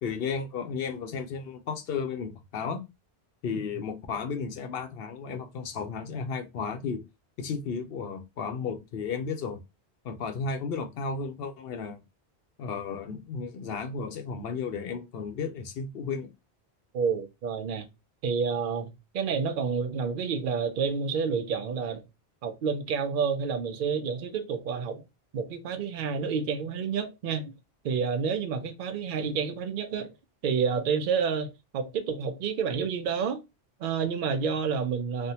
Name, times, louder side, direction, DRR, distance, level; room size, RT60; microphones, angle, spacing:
voice 1, 0.0-2.8 3.4-7.0 7.4-9.6 10.0-12.0 12.6-16.3, left 5 dB, 65° left, 0.8 m, -33 dB
voice 2, 16.9-17.9 18.2-22.0 22.4-25.0 25.3-27.5 27.8-30.1 30.4-33.4 33.8-35.3, right 6 dB, 60° right, 0.7 m, -29 dB
3.4 x 2.1 x 2.7 m
omnidirectional pair, 1.1 m